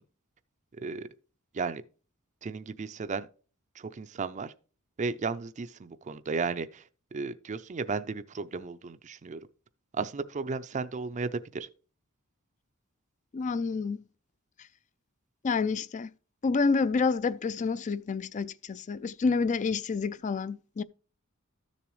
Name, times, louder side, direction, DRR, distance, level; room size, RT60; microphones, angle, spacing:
voice 1, 0.8-1.1 1.5-1.8 2.4-3.3 3.8-4.5 5.0-6.8 7.1-9.4 9.9-11.7, right 4 dB, 35° right, 0.4 m, -34 dB
voice 2, 13.3-14.1 15.4-16.1 16.4-20.8, left 4 dB, 35° left, 0.4 m, -28 dB
13.0 x 7.0 x 3.1 m
head